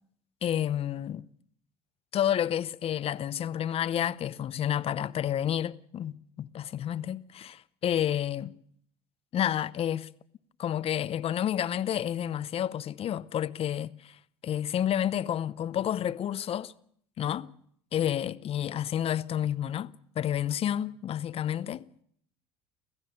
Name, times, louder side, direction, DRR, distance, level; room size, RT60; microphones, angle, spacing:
voice 1, 0.4-1.3 2.1-8.6 9.3-10.1 10.6-14.2 14.4-16.7 17.2-17.5 17.9-19.9 20.2-22.0, left 10 dB, 45° left, 0.8 m, -30 dB
25.5 x 15.5 x 6.8 m
supercardioid pair, 85°, 14 cm